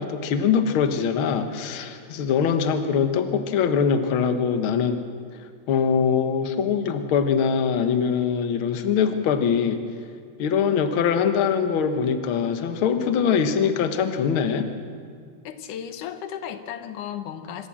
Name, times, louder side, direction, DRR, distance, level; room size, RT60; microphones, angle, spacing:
voice 1, 0.0-5.0 5.7-9.8 10.4-14.7, left 7 dB, 55° left, 8 dB, 1.6 m, -23 dB
voice 2, 15.4-17.7, left 9 dB, 80° left, 9 dB, 2.6 m, -35 dB
26.0 x 13.5 x 7.5 m, 2.1 s
omnidirectional pair, 3.5 m